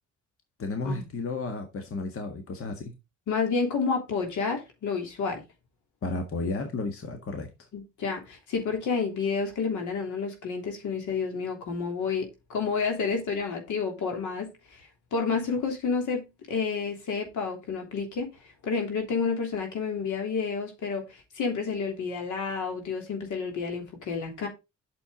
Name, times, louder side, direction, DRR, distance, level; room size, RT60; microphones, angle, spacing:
voice 1, 0.6-2.9 6.0-7.5, left 3 dB, 45° left, 1.7 m, -32 dB
voice 2, 3.3-5.4 7.7-14.8 15.1-18.3 18.6-24.5, left 5 dB, 80° left, 3.2 m, -30 dB
8.6 x 6.9 x 3.8 m
cardioid pair, 90°, 30 cm